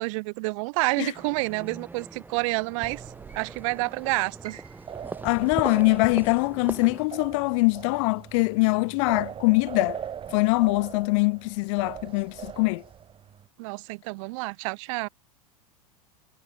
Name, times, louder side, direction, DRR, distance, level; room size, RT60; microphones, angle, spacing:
voice 1, 0.0-3.0 3.3-4.6 13.6-15.1, right 27 dB, 60° right, 0.9 m, -29 dB
sound 1, 1.1-7.1, right 3 dB, 10° right, 1.9 m, -40 dB
sound 2, 2.8-13.5, right 8 dB, 30° right, 1.8 m, -41 dB
Piano, 4.4-10.4 10.7-11.9 12.3-12.4 13.1-13.4, right 8 dB, 90° right, 2.4 m, -56 dB
voice 2, 5.2-10.0 10.3-12.8, left 28 dB, 55° left, 0.5 m, -23 dB
hypercardioid pair, 95°, 19 cm